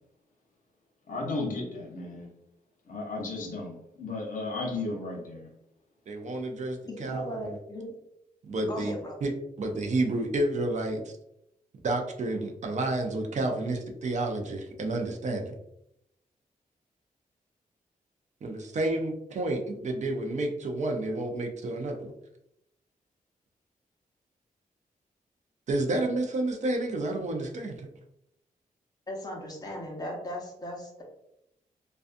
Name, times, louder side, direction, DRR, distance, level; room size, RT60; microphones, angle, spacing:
voice 1, 1.1-2.3 2.9-5.5, left 2 dB, 65° left, -1 dB, 0.7 m, -34 dB
voice 2, 6.1-7.6 8.5-8.9 9.2-9.3 9.6-11.1 11.8-15.6 18.4-22.1 25.7-27.9, right 2 dB, 55° right, 3 dB, 0.5 m, -30 dB
voice 3, 6.9-7.9 8.6-9.2 29.1-31.0, equal, 25° left, -1 dB, 0.8 m, -37 dB
2.5 x 2.3 x 2.4 m, 0.79 s
cardioid pair, 100°, 15 cm